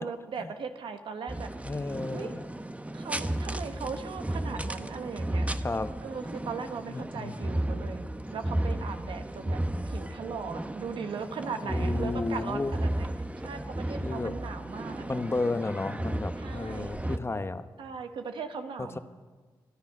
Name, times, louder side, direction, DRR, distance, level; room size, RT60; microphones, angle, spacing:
voice 1, 0.0-1.5 2.1-2.3 2.9-5.5 6.0-8.0 8.3-13.1 13.4-15.2 16.4-16.9 17.8-19.0, right 5 dB, 80° right, 7 dB, 1.3 m, -38 dB
sound 1, 1.3-17.2, right 1 dB, 15° right, 0.9 m, -34 dB
voice 2, 1.7-2.4 5.6-6.0 6.9-7.6 11.6-12.8 14.0-14.4 15.1-17.7 18.8-19.0, left 3 dB, 30° left, 11 dB, 0.9 m, -33 dB
25.5 x 10.5 x 5.4 m, 1.4 s
cardioid pair, 55°, 9 cm